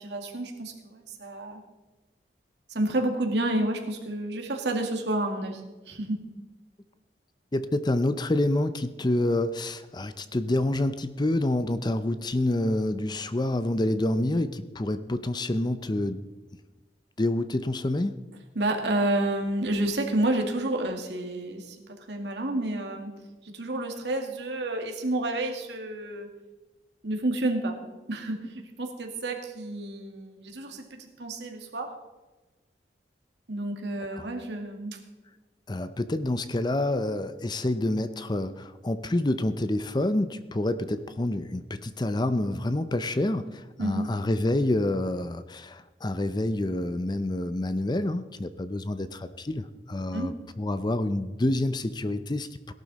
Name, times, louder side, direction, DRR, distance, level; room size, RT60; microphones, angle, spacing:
voice 1, 0.0-1.6 2.7-6.2 18.6-21.8 22.1-23.1 23.4-26.3 27.0-27.8 28.1-32.0 33.5-35.0 43.8-44.1 50.1-50.3, right 1 dB, 75° right, 3 dB, 2.1 m, -30 dB
voice 2, 7.5-16.3 17.2-18.2 34.1-34.3 35.7-52.7, left 1 dB, 25° left, 12 dB, 0.6 m, -28 dB
17.5 x 11.5 x 4.2 m, 1.2 s
head